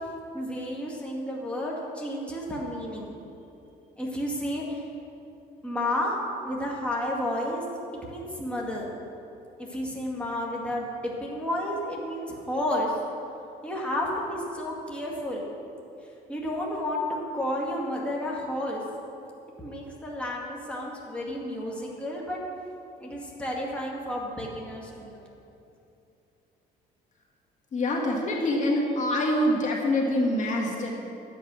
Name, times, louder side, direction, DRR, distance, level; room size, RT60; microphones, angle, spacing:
voice 1, 0.3-3.1 4.0-4.8 5.6-6.2 6.4-7.6 8.1-8.9 9.6-12.9 13.6-15.4 16.3-17.1 17.3-18.8 19.6-22.4 23.0-25.2, left 1 dB, 5° left, -4 dB, 2.2 m, -31 dB
voice 2, 27.7-30.9, left 1 dB, 45° left, -1 dB, 1.9 m, -25 dB
12.0 x 8.5 x 6.3 m, 2.8 s
cardioid pair, 110°, 17 cm